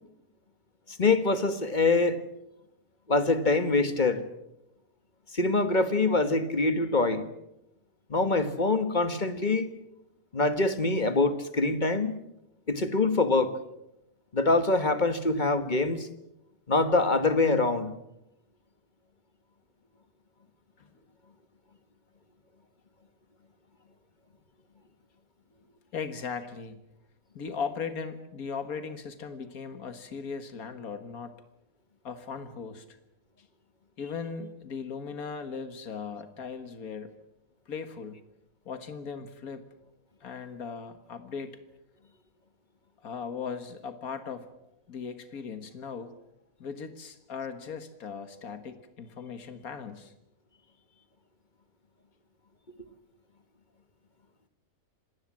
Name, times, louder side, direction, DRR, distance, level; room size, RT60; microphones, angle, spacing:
voice 1, 1.0-2.2 3.1-4.2 5.3-7.3 8.1-9.7 10.3-12.2 12.7-13.5 14.3-16.1 16.7-17.9, left 3 dB, 35° left, 1.6 m, -24 dB
voice 2, 25.9-26.8 27.4-31.3 32.0-33.0 34.0-37.1 37.7-38.2 38.7-39.6 40.2-41.6 43.0-44.5 44.9-46.1 46.6-50.1, left 5 dB, 85° left, 2.0 m, -38 dB
26.0 x 19.0 x 7.5 m
omnidirectional pair, 1.5 m